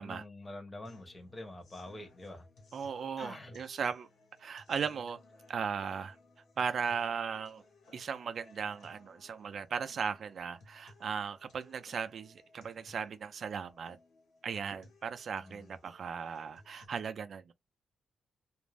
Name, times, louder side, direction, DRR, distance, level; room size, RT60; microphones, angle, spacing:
voice 1, 0.0-2.5 3.2-3.6 15.4-15.7, left 1 dB, 20° left, 0.9 m, -46 dB
sound 1, 0.9-16.9, left 3 dB, 85° left, 1.2 m, -61 dB
voice 2, 2.7-4.1 4.4-5.2 5.5-6.2 6.6-7.6 7.9-14.0 14.4-17.5, right 6 dB, 60° right, 0.4 m, -37 dB
2.5 x 2.0 x 3.2 m
cardioid pair, 85°, 0 cm